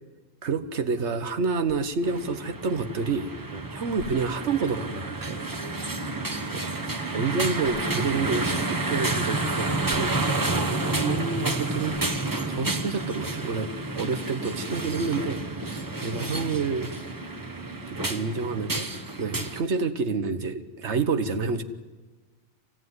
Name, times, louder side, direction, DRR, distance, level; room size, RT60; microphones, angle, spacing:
voice 1, 0.4-3.3 3.7-5.5 6.5-10.2 10.9-12.0 12.5-16.9 17.9-18.9 19.2-21.6, right 4 dB, 90° right, 9 dB, 1.5 m, -29 dB
sound 1, 1.6-2.0 2.8-2.9 3.9-4.6 5.2-5.4 7.6-8.0 8.7-8.8 9.8-10.3 10.8-10.9 11.9-12.4, left 2 dB, 90° left, 2.2 m, -47 dB
sound 2, 2.0-19.6, right 2 dB, 20° right, 1.0 m, -30 dB
voice 2, 5.9-6.9 15.6-15.9 19.3-19.4, right 2 dB, 40° right, 9 dB, 0.8 m, -44 dB
25.0 x 16.5 x 9.6 m, 1.3 s
omnidirectional pair, 1.1 m